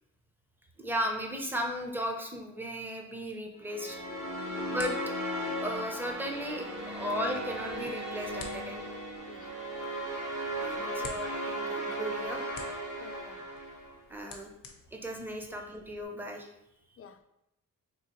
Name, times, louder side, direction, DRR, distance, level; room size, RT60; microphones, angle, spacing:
voice 1, 0.8-4.0 4.7-4.9 5.6-6.7 6.9-8.9 10.6-12.7 14.1-14.5 14.9-16.5, equal, 5° right, 2 dB, 0.6 m, -36 dB
sound 1, 3.6-14.0, right 1 dB, 55° right, 1.3 m, -36 dB
sound 2, 3.9-16.1, left 4 dB, 75° left, 0.7 m, -52 dB
voice 2, 10.8-11.1 13.0-13.5 15.5-15.6 17.0-17.2, left 6 dB, 40° left, 8 dB, 0.4 m, -51 dB
3.7 x 2.5 x 2.9 m, 0.84 s
cardioid pair, 75°, 34 cm